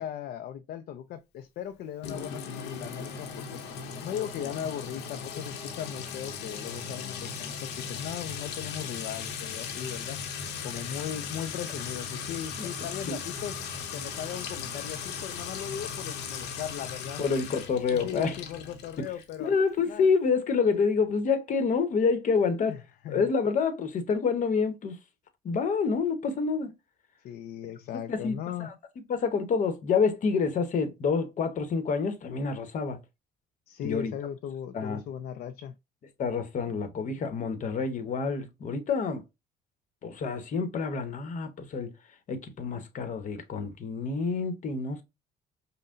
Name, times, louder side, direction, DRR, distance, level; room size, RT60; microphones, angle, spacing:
voice 1, 0.0-3.5 4.0-10.2 10.6-13.6 13.9-17.2 17.9-19.5 19.9-20.1 22.7-23.3 27.2-28.7 33.7-35.7, left 10 dB, 65° left, 0.5 m, -38 dB
Sink (filling or washing) / Trickle dribble / Fill (with liquid), 2.0-19.5, left 6 dB, 85° left, 0.9 m, -38 dB
voice 2, 17.2-18.4 19.0-19.1 19.4-22.8 23.1-25.0 25.4-26.7 28.1-28.7 29.1-33.0 33.8-34.1 34.7-35.0 36.2-39.2 40.0-41.9 42.3-45.0, left 5 dB, 50° left, 0.9 m, -27 dB
5.4 x 2.2 x 2.5 m
cardioid pair, 110°, 17 cm